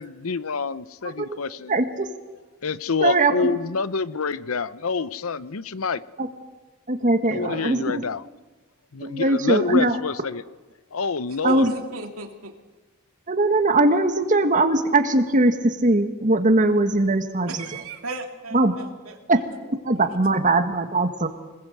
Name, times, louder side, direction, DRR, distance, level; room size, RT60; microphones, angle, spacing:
voice 1, 0.0-1.8 2.6-6.0 7.3-8.2 8.9-10.4 10.9-11.7, left 4 dB, 75° left, 17 dB, 0.8 m, -27 dB
voice 2, 1.0-1.4 1.7-2.1 3.0-3.6 6.2-6.3 6.9-8.0 9.0-10.0 11.4-11.7 13.3-17.6 18.5-18.7 19.3-19.4 19.8-21.3, right 2 dB, 40° right, 8 dB, 1.6 m, -20 dB
voice 3, 11.5-12.5 17.5-19.2 20.0-20.1, right 2 dB, 80° right, 4 dB, 2.7 m, -35 dB
26.0 x 21.0 x 8.0 m, 1.2 s
head